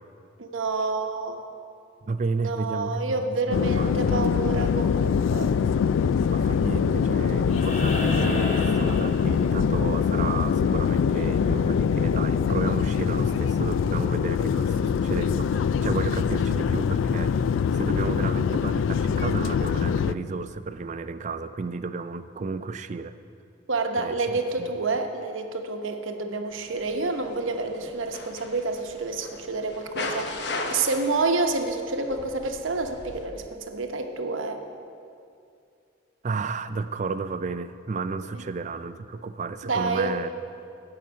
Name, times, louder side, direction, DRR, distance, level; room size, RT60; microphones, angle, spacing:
voice 1, 0.4-1.5 2.4-5.5 23.7-34.6 38.3-38.5 39.6-40.2, right 3 dB, 85° right, 5 dB, 1.0 m, -28 dB
voice 2, 2.0-3.0 3.5-4.3 6.3-17.3 17.7-23.1 24.0-24.3 36.2-40.3, right 4 dB, 35° right, 12 dB, 0.3 m, -32 dB
sound 1, 3.5-20.1, left 6 dB, 80° left, 0.3 m, -23 dB
sound 2, 7.5-9.8 11.6-11.7, left 1 dB, 35° left, 1.3 m, -31 dB
sound 3, 26.5-33.3, left 2 dB, 60° left, 0.9 m, -38 dB
16.0 x 5.9 x 6.3 m, 2.5 s
head